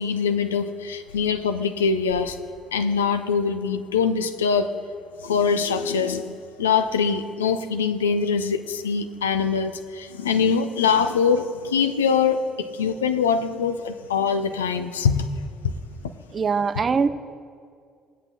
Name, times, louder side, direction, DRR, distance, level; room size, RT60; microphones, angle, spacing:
voice 1, 0.0-2.4 2.7-4.7 5.2-15.7, left 6 dB, 75° left, 9 dB, 0.4 m, -23 dB
voice 2, 16.3-17.1, right 5 dB, 35° right, 12 dB, 0.5 m, -22 dB
20.0 x 8.2 x 2.8 m, 2.2 s
figure-of-eight pair, 50°, 0 cm